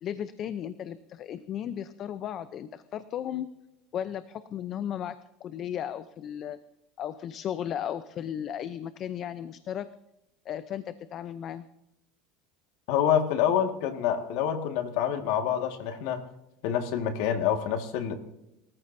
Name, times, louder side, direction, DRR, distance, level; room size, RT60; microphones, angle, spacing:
voice 1, 0.0-3.5 3.9-6.6 7.0-9.9 10.4-11.7, left 10 dB, 45° left, 12 dB, 0.7 m, -35 dB
voice 2, 12.9-16.3 16.6-18.1, left 9 dB, 75° left, 5 dB, 1.9 m, -27 dB
29.0 x 14.5 x 2.7 m, 0.90 s
supercardioid pair, 110°, 0 cm